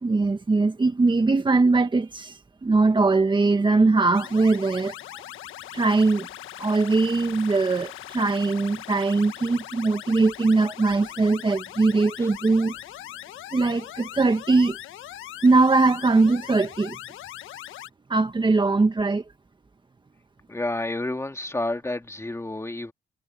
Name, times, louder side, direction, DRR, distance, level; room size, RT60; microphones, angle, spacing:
voice 1, 0.0-4.9 5.7-6.3 6.6-12.7 13.5-14.8 15.4-17.0 18.1-19.2, right 3 dB, 25° right, 1.6 m, -21 dB
sound 1, 4.1-17.9, left 13 dB, 85° left, 1.4 m, -40 dB
voice 2, 20.5-22.9, left 2 dB, 15° left, 2.5 m, -30 dB
cardioid pair, 90°, 20 cm